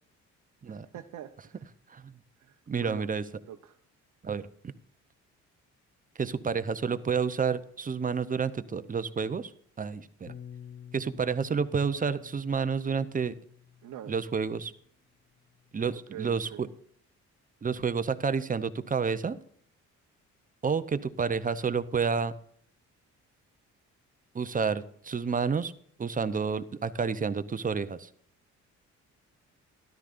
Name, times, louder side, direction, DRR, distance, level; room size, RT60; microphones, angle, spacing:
voice 1, 0.7-1.6 2.4-3.1 3.5-3.8 13.8-14.2 16.1-16.6, right 11 dB, 70° right, 4 dB, 0.9 m, -44 dB
voice 2, 2.7-3.2 4.2-4.5 6.2-9.5 9.8-10.3 10.9-13.4 14.1-14.7 15.7-16.7 17.6-19.4 20.6-22.3 24.3-25.7 26.0-28.1, right 5 dB, 25° right, 13 dB, 0.8 m, -29 dB
Bass guitar, 10.3-14.8 15.5-16.5, left 8 dB, 40° left, 0.7 m, -50 dB
13.0 x 11.5 x 2.6 m, 0.62 s
cardioid pair, 90°, 30 cm